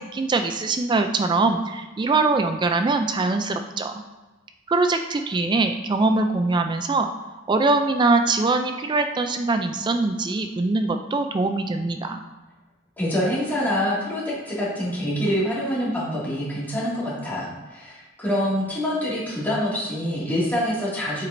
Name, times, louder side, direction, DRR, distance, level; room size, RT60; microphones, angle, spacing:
voice 1, 0.0-3.9 4.7-7.1 7.5-12.2, right 3 dB, 20° right, 6 dB, 0.3 m, -22 dB
voice 2, 13.0-21.3, equal, 10° left, -8 dB, 2.1 m, -26 dB
7.4 x 6.0 x 2.6 m, 1.2 s
head